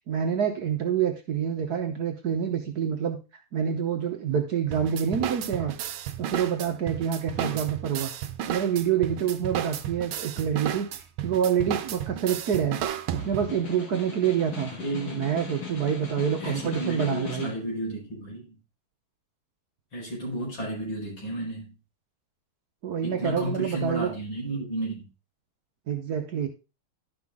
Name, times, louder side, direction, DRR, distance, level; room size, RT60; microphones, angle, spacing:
voice 1, 0.1-3.2 3.5-5.7 6.2-8.1 8.5-10.9 11.2-12.8 13.1-14.7 15.1-17.5 22.8-24.1 25.9-26.5, right 8 dB, 55° right, 1.2 m, -27 dB
sound 1, 4.7-13.6, right 10 dB, 75° right, 1.5 m, -33 dB
Snare drum, 13.0-17.7, left 7 dB, 50° left, 2.1 m, -39 dB
voice 2, 14.8-15.3 16.4-18.5 19.9-21.7 23.0-25.0, right 1 dB, 65° left, 5.7 m, -32 dB
11.5 x 5.8 x 3.6 m
omnidirectional pair, 2.3 m